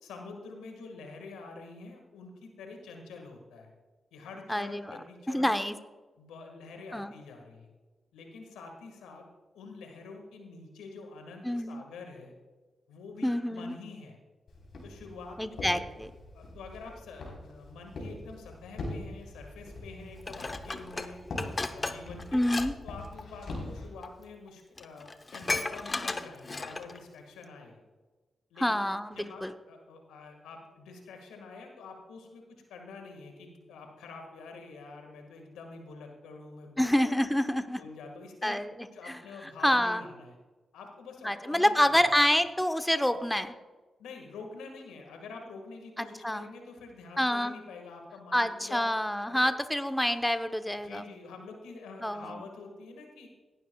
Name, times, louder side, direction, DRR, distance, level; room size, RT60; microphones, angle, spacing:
voice 1, 0.0-3.7 4.1-5.5 6.2-7.7 8.1-9.2 9.5-12.3 12.9-14.2 14.8-15.5 16.3-21.2 21.7-22.4 22.8-27.8 28.5-28.9 29.1-37.1 37.8-38.6 38.9-40.3 40.7-42.0 44.0-48.9 49.3-49.5 50.8-53.3, left 4 dB, 90° left, 3 dB, 1.7 m, -46 dB
voice 2, 4.5-4.9 5.3-5.7 6.9-7.1 11.4-11.8 13.2-13.7 15.4-16.1 22.3-22.7 28.6-29.5 36.8-37.8 38.4-38.7 39.1-39.2 39.6-40.0 41.2-43.6 46.0-46.5 47.2-47.5 48.3-51.0 52.0-52.3, left 1 dB, 5° left, 9 dB, 0.8 m, -27 dB
Walk footsteps, 14.5-23.9, left 2 dB, 70° left, 3.8 m, -43 dB
Dishes pots and pans, 20.3-22.7 23.0-23.2 24.0-24.1 24.5-24.6 24.8-27.0 27.4-27.5, left 3 dB, 35° left, 0.9 m, -35 dB
17.5 x 12.0 x 2.3 m, 1.3 s
supercardioid pair, 45°, 0 cm